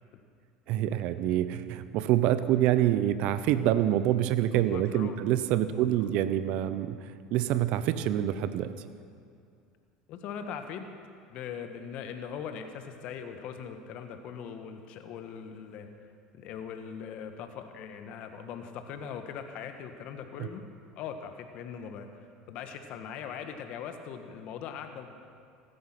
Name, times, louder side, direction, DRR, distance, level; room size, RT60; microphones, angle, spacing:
voice 1, 0.7-7.0 7.3-8.7, right 12 dB, 60° right, 13 dB, 0.9 m, -26 dB
voice 2, 4.5-5.2 5.6-6.1 10.1-10.9 11.3-15.9 16.3-20.6 21.0-22.1 22.5-25.1, left 7 dB, 60° left, 6 dB, 1.5 m, -40 dB
15.5 x 13.0 x 6.0 m, 2.4 s
hypercardioid pair, 85°, 2 cm